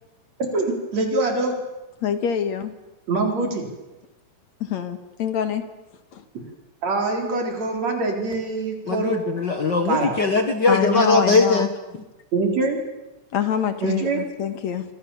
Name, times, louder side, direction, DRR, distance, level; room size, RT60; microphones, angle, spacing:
voice 1, 0.5-1.5 3.1-3.7 6.4-6.5 6.8-9.2 9.9-10.1 12.3-12.8 13.8-14.2, right 3 dB, 65° right, 3 dB, 5.3 m, -24 dB
voice 2, 2.0-2.7 4.6-5.6 6.1-6.2 10.7-11.7 13.3-14.8, left 8 dB, 70° left, 9 dB, 3.0 m, -25 dB
voice 3, 8.9-11.7, left 3 dB, 45° left, 7 dB, 1.8 m, -20 dB
27.0 x 25.5 x 7.2 m, 1.0 s
omnidirectional pair, 3.4 m